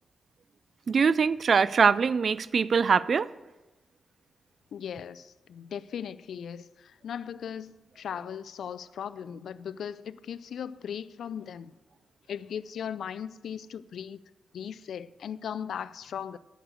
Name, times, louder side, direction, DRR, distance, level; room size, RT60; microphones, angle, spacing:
voice 1, 0.9-3.3, right 5 dB, 60° right, 0.3 m, -23 dB
voice 2, 4.7-11.7 12.3-14.2 14.5-16.4, left 8 dB, 80° left, 0.4 m, -38 dB
9.4 x 6.6 x 7.7 m
cardioid pair, 70°, 0 cm